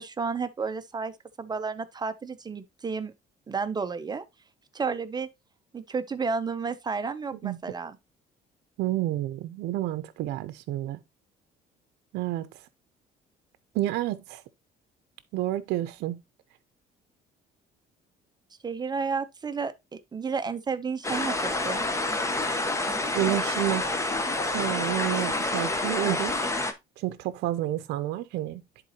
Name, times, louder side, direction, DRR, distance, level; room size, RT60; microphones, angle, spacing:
voice 1, 0.0-3.1 3.5-4.2 4.7-5.3 5.7-8.0 18.6-21.8, right 5 dB, 25° right, 0.7 m, -32 dB
voice 2, 8.8-11.0 12.1-12.5 13.7-14.4 15.3-16.2 23.1-23.9 24.5-26.5 27.0-28.6, right 14 dB, 85° right, 0.6 m, -29 dB
sound 1, 21.0-26.7, left 2 dB, 15° left, 1.0 m, -28 dB
10.5 x 4.1 x 2.9 m
cardioid pair, 110°, 17 cm